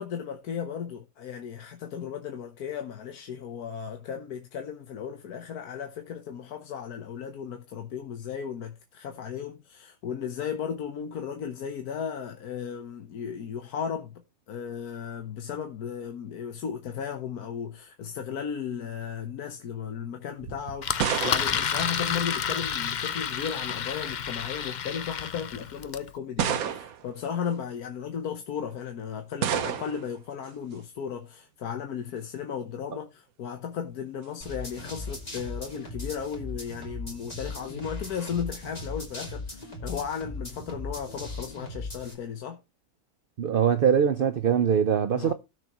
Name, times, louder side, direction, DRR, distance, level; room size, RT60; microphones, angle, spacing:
voice 1, 0.0-14.1 14.5-42.6 45.1-45.3, left 7 dB, 85° left, 1.5 m, -35 dB
sound 1, 20.4-22.7 23.8-24.2 25.1-25.2 26.4-27.2 29.4-30.2, right 9 dB, 70° right, 1.3 m, -31 dB
Engine, 20.8-26.1, left 7 dB, 60° left, 0.4 m, -30 dB
sound 2, 34.4-42.1, left 2 dB, 25° left, 3.0 m, -38 dB
voice 2, 43.4-45.3, right 8 dB, 55° right, 0.6 m, -22 dB
16.5 x 6.4 x 3.0 m
omnidirectional pair, 1.6 m